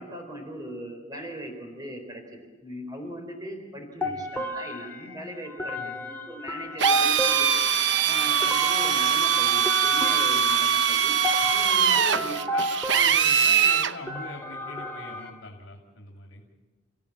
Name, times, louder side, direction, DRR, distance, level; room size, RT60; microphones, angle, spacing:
voice 1, 0.0-7.5 8.1-11.2 11.5-12.3, equal, 20° right, 3 dB, 4.1 m, -39 dB
sound 1, 4.0-15.3, equal, 10° left, 2.0 m, -32 dB
Drill, 6.8-13.9, right 8 dB, 60° right, 0.7 m, -22 dB
voice 2, 11.9-16.4, left 2 dB, 75° left, 1 dB, 2.9 m, -41 dB
30.0 x 16.0 x 8.6 m, 1.3 s
head